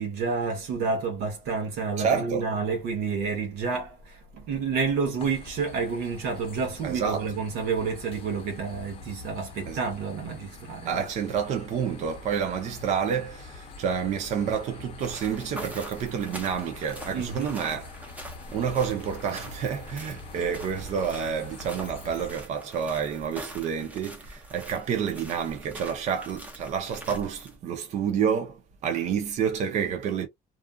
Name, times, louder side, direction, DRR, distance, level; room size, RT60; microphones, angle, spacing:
voice 1, 0.0-11.0 17.1-17.5, right 5 dB, 75° right, 0.9 m, -29 dB
voice 2, 2.0-2.5 6.8-7.3 9.7-9.8 10.9-17.9 18.5-30.3, right 7 dB, 45° right, 0.5 m, -29 dB
sound 1, 5.2-22.3, left 3 dB, 35° left, 0.7 m, -45 dB
sound 2, 15.0-27.6, equal, 10° right, 0.6 m, -44 dB
2.4 x 2.4 x 2.2 m
cardioid pair, 150°, 16 cm